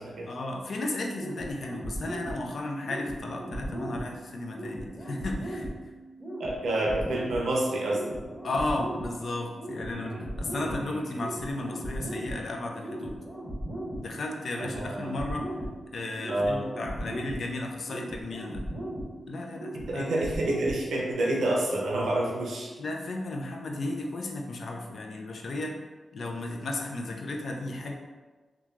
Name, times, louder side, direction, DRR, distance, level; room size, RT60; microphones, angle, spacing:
voice 1, 0.3-5.7 8.4-13.2 14.0-15.5 15.9-18.6 19.3-20.1 22.8-25.8 26.1-27.9, left 2 dB, 65° left, 1 dB, 0.4 m, -34 dB
sound 1, 1.1-21.1, right 1 dB, 10° left, 1.2 m, -38 dB
voice 2, 6.4-8.1 9.9-10.2 10.5-11.0 14.7-15.2 16.3-16.6 19.7-22.7, right 1 dB, 90° right, -2 dB, 0.6 m, -29 dB
3.0 x 2.3 x 2.4 m, 1.3 s
cardioid pair, 70°, 0 cm